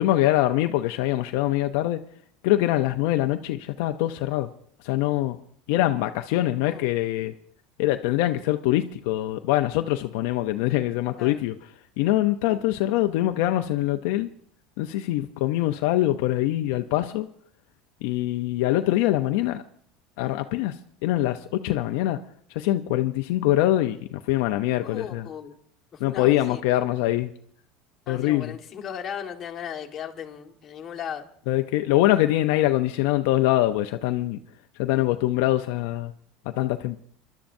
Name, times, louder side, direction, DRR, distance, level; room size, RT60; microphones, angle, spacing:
voice 1, 0.0-2.0 2.4-4.5 4.8-5.4 5.7-7.3 7.8-11.6 12.0-14.3 14.8-17.3 18.0-19.6 20.2-20.8 21.0-22.2 22.5-25.3 26.0-27.3 28.1-28.6 31.5-34.4 34.8-36.1 36.6-37.0, left 15 dB, 70° left, 6 dB, 0.5 m, -23 dB
voice 2, 6.5-6.9 7.2-7.3 11.2-11.4 12.5-12.6 24.8-25.6 25.9-26.6 28.1-31.2, left 8 dB, 30° left, 1 dB, 1.5 m, -37 dB
29.5 x 11.5 x 2.6 m, 0.63 s
supercardioid pair, 145°, 0 cm